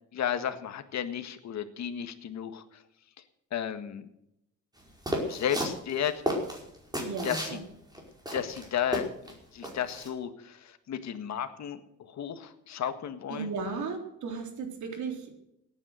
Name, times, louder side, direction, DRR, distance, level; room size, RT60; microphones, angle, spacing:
voice 1, 0.1-2.8 3.5-4.1 5.2-6.2 7.2-7.6 8.3-13.5, left 9 dB, 65° left, 9 dB, 1.7 m, -33 dB
sound 1, 5.1-7.6 7.9-8.0 8.3-9.3 9.6-10.1, equal, 15° right, 5.1 m, -32 dB
voice 2, 7.0-7.6 13.3-15.4, right 4 dB, 75° right, 3 dB, 3.8 m, -35 dB
17.5 x 9.7 x 6.5 m, 0.78 s
cardioid pair, 90°, 30 cm